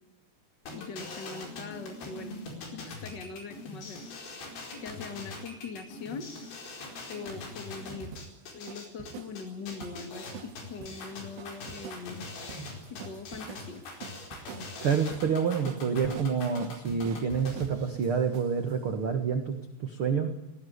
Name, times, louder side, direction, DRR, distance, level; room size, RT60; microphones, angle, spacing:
sound 1, 0.7-17.7, left 2 dB, 75° left, 6.8 m, -42 dB
voice 1, 0.7-2.3 2.7-4.0 4.7-6.3 7.1-8.1 8.5-12.2 12.9-13.8, left 4 dB, 35° left, 7 dB, 2.2 m, -41 dB
sound 2, 6.8-18.8, right 8 dB, 85° right, 3.9 m, -47 dB
voice 2, 14.8-20.3, right 6 dB, 50° right, 6 dB, 1.7 m, -28 dB
19.5 x 19.0 x 9.7 m, 0.92 s
omnidirectional pair, 4.9 m